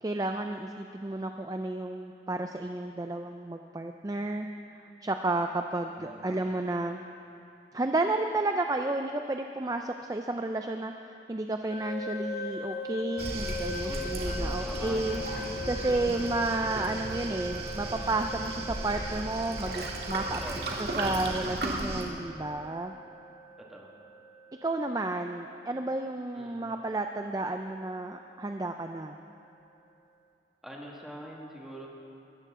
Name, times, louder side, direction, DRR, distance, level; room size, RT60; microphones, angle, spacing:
voice 1, 0.0-4.5 4.8-7.0 7.7-15.2 15.7-20.4 20.8-22.9 24.6-29.2, right 2 dB, 20° right, 5 dB, 0.4 m, -32 dB
voice 2, 5.9-6.5 13.8-15.4 20.3-20.7 23.6-23.9 26.3-26.6 30.6-31.9, equal, ahead, -3 dB, 1.7 m, -44 dB
sound 1, 11.7-26.5, left 1 dB, 45° left, 1.0 m, -41 dB
Waves surf, 13.2-22.0, right 2 dB, 65° right, 1.8 m, -35 dB
22.5 x 13.5 x 3.7 m, 2.8 s
head